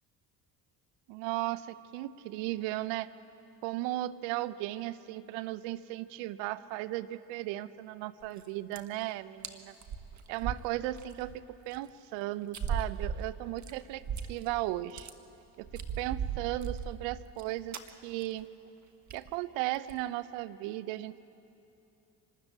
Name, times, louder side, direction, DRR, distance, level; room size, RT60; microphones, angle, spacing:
voice 1, 1.1-3.1 3.6-9.7 10.3-14.0 14.3-15.1 15.6-18.5 19.1-21.2, right 16 dB, 65° right, 15 dB, 0.8 m, -36 dB
sound 1, 8.2-8.4 8.7-9.0 9.4-9.5 9.8-11.3 11.7-11.8 12.5-14.5 14.8-15.1 15.6-17.4 17.7-17.9 18.2-18.4 18.7-18.8 19.1-19.3 19.7-20.0, right 7 dB, 35° right, 1.5 m, -37 dB
25.5 x 13.0 x 8.9 m, 2.9 s
hypercardioid pair, 55°, 47 cm